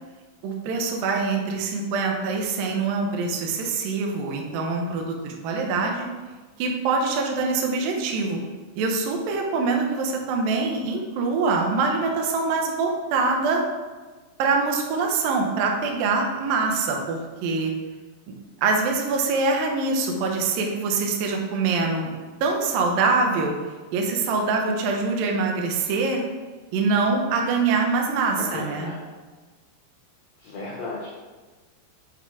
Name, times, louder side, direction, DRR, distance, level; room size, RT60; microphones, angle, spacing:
voice 1, 0.4-6.1 6.6-8.4 8.8-13.6 14.4-17.7 18.3-18.4 18.6-22.1 22.4-23.5 23.9-26.2 26.7-28.9, right 4 dB, 80° right, 1 dB, 2.0 m, -24 dB
voice 2, 28.3-29.0 30.4-31.1, left 3 dB, 75° left, -3 dB, 2.1 m, -34 dB
7.8 x 4.3 x 4.7 m, 1.3 s
omnidirectional pair, 5.4 m